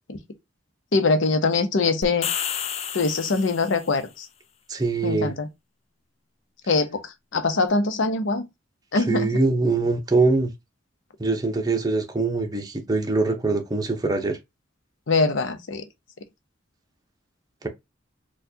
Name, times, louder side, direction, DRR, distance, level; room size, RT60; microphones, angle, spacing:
voice 1, 0.9-2.3 2.9-4.3 5.0-5.5 6.7-7.0 7.3-8.5 8.9-9.3 15.1-15.8, left 3 dB, 90° left, 0.7 m, -22 dB
sound 1, 2.0-4.0, left 9 dB, 35° left, 0.3 m, -30 dB
voice 2, 4.7-5.3 8.9-10.5 11.2-14.4, right 3 dB, 20° right, 0.6 m, -23 dB
4.4 x 2.3 x 2.7 m
head